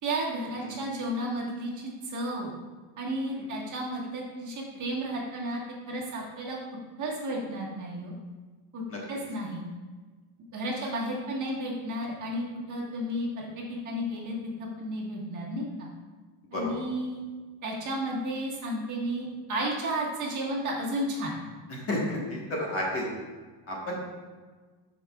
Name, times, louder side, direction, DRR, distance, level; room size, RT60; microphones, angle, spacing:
voice 1, 0.0-2.5 3.0-6.6 7.0-8.1 8.7-8.8 9.1-9.6 10.5-15.9 16.5-17.2 17.6-21.3, right 1 dB, 40° right, -3 dB, 1.6 m, -33 dB
voice 2, 21.7-23.0 23.7-23.9, left 1 dB, 30° left, -3 dB, 1.4 m, -31 dB
12.5 x 5.1 x 2.4 m, 1.4 s
cardioid pair, 160°, 47 cm